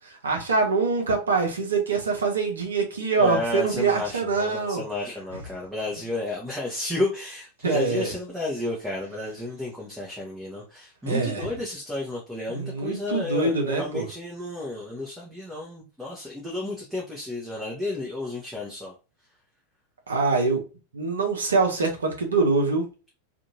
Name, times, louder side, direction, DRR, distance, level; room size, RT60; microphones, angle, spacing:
voice 1, 0.2-4.8 7.6-8.1 11.1-11.5 12.5-14.1 20.1-20.6 20.9-22.8, right 4 dB, 70° right, 0.8 m, -24 dB
voice 2, 3.1-18.9, left 2 dB, 5° right, 0.8 m, -32 dB
2.7 x 2.5 x 2.7 m
figure-of-eight pair, 90°, 0 cm